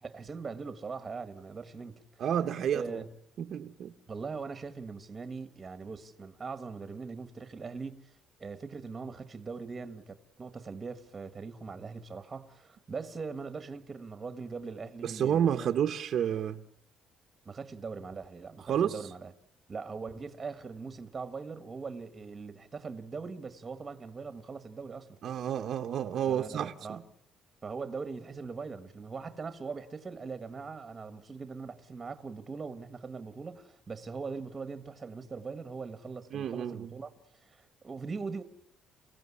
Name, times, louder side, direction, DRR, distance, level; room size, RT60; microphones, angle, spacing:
voice 1, 0.0-2.0 2.7-3.1 4.1-8.0 8.4-15.7 17.4-19.3 19.7-25.1 26.2-27.0 27.6-37.1 37.4-38.4, right 4 dB, 20° right, 1.6 m, -41 dB
voice 2, 2.2-3.0 3.5-3.9 15.0-16.6 18.7-19.0 25.2-27.0 36.3-36.9, right 9 dB, 45° right, 1.2 m, -30 dB
29.0 x 16.5 x 9.9 m
cardioid pair, 165°, 0 cm